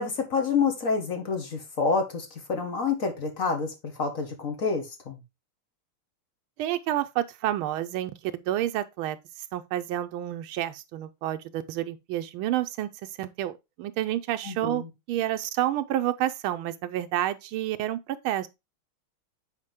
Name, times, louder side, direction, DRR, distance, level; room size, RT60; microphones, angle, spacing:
voice 1, 0.0-5.2 14.4-14.9, left 5 dB, 40° left, 1.7 m, -28 dB
voice 2, 6.6-9.2 9.5-14.8 15.1-18.5, right 13 dB, 80° right, 1.5 m, -29 dB
8.2 x 4.4 x 3.5 m
omnidirectional pair, 2.3 m